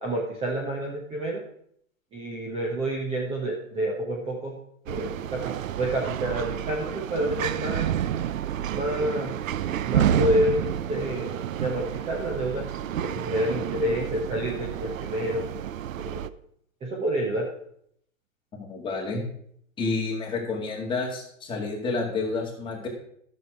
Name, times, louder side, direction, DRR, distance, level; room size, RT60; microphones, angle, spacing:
voice 1, 0.0-1.4 2.1-4.5 4.8-7.9 8.7-9.3 9.8-12.7 13.0-15.4 16.0-16.3 16.8-17.5, right 1 dB, 15° right, -2 dB, 1.1 m, -28 dB
sound 1, 4.9-16.3, right 10 dB, 80° right, 0.6 m, -29 dB
voice 2, 18.6-19.2 19.8-22.9, left 3 dB, 10° left, -1 dB, 2.0 m, -29 dB
10.5 x 6.7 x 4.8 m, 0.68 s
hypercardioid pair, 145°, 40 cm